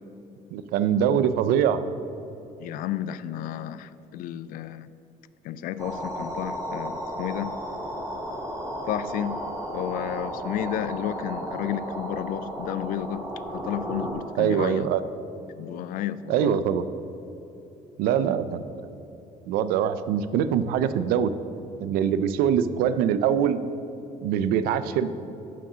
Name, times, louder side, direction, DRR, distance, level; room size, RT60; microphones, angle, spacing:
voice 1, 0.5-1.8 14.4-15.0 16.3-16.9 18.0-18.6 19.5-21.3 21.8-23.6 24.2-25.1, right 8 dB, 90° right, 13 dB, 0.5 m, -23 dB
voice 2, 2.6-4.9 5.4-7.5 8.9-9.4 9.7-13.2 13.5-14.9 15.6-16.6, left 11 dB, 70° left, 15 dB, 0.4 m, -32 dB
sound 1, 5.8-14.1, right 1 dB, 20° right, 2.0 m, -34 dB
7.2 x 5.8 x 7.3 m, 2.9 s
cardioid pair, 130°, 15 cm